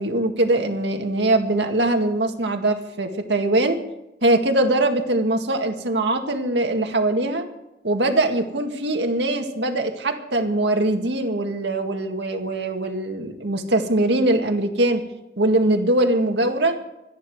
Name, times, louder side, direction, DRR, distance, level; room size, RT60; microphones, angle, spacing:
voice 1, 0.0-3.8 4.2-7.4 7.8-15.0 15.4-16.8, right 2 dB, 80° right, 5 dB, 2.0 m, -22 dB
25.5 x 10.0 x 4.8 m, 0.90 s
head